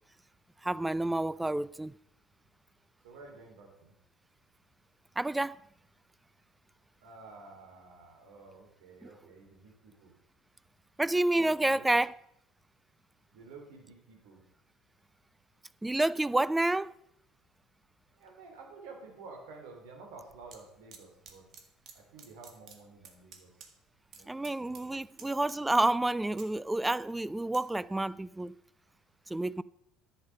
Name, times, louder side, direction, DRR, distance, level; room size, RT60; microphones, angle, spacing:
voice 1, 0.6-1.9 5.2-5.6 11.0-12.2 15.8-16.9 24.3-28.5 29.3-29.6, right 2 dB, 10° right, 0.4 m, -29 dB
voice 2, 3.0-3.9 7.0-10.1 11.6-11.9 13.3-14.4 18.2-21.4 21.9-23.5 24.1-24.3 24.6-24.9, right 3 dB, 75° right, 3.2 m, -51 dB
sound 1, 20.2-20.6 20.9-21.9 22.2-23.7 24.0-24.2 24.4-24.9 25.2-25.8 26.2-27.6 28.1-28.3, right 7 dB, 55° right, 1.8 m, -52 dB
10.5 x 8.1 x 5.3 m
hypercardioid pair, 70°, 0 cm